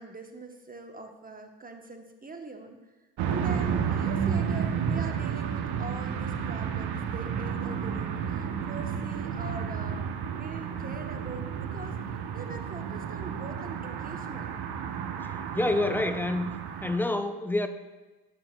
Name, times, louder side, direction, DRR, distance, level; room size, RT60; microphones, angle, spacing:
voice 1, 0.0-2.8 3.2-10.1 10.4-12.0 12.3-14.5, right 3 dB, 20° right, 4 dB, 0.9 m, -42 dB
sound 1, 3.2-17.0, right 7 dB, 55° right, 0.9 m, -31 dB
voice 2, 15.5-16.5 16.8-17.7, left 2 dB, 5° left, 9 dB, 0.3 m, -27 dB
11.5 x 6.9 x 2.2 m, 1.1 s
supercardioid pair, 70°, 46 cm